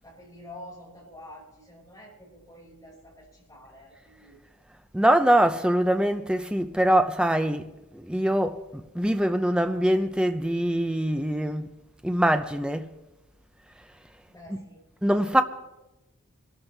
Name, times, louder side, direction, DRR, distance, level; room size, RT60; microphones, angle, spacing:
voice 1, 0.0-4.4 14.3-14.8 15.2-15.4, left 1 dB, 15° left, 5.4 m, -48 dB
voice 2, 4.9-7.7 7.9-11.7 12.0-12.9 15.0-15.4, right 1 dB, 5° right, 0.5 m, -23 dB
23.5 x 13.0 x 3.4 m
head